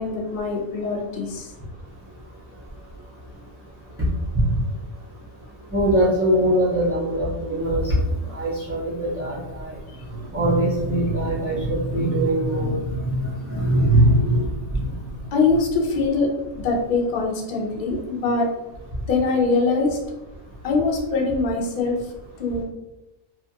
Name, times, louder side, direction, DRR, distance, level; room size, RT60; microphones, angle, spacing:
voice 1, 0.0-1.5 7.5-7.6 9.9-10.0 15.3-18.5 19.1-20.0 20.6-22.6, left 3 dB, 55° left, 0 dB, 0.6 m, -23 dB
voice 2, 5.7-7.9 8.3-9.7 10.3-14.5 14.8-14.9, right 1 dB, 20° right, -9 dB, 0.4 m, -21 dB
2.8 x 2.3 x 2.7 m, 0.97 s
omnidirectional pair, 1.3 m